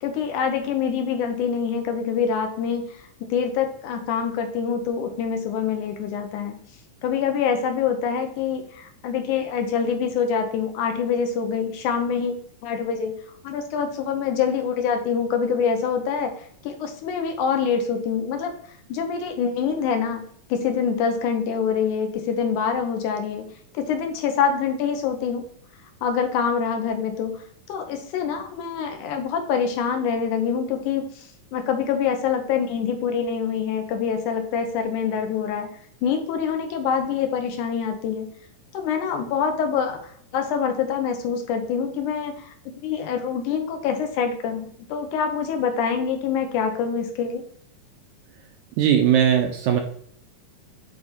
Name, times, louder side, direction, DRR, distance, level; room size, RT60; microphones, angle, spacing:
voice 1, 0.0-6.6 7.0-13.1 13.4-16.3 16.6-18.5 18.9-20.2 20.5-23.5 23.7-25.4 26.0-35.7 36.0-38.3 38.7-42.5 42.8-47.4, left 6 dB, 80° left, 5 dB, 2.0 m, -25 dB
voice 2, 48.8-49.8, right 9 dB, 80° right, 4 dB, 1.8 m, -19 dB
8.0 x 3.3 x 4.2 m, 0.63 s
omnidirectional pair, 3.9 m